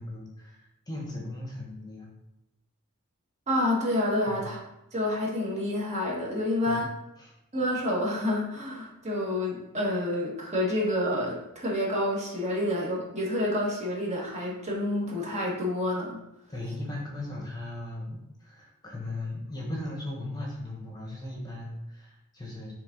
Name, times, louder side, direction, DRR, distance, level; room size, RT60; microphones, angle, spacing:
voice 1, 0.0-2.1 4.3-4.5 6.7-6.9 7.2-7.3 16.5-22.7, left 1 dB, 20° left, -2 dB, 1.1 m, -38 dB
voice 2, 3.5-4.6 4.9-6.9 7.5-16.2, left 1 dB, 30° right, -3 dB, 1.6 m, -28 dB
6.6 x 3.7 x 3.9 m, 0.87 s
head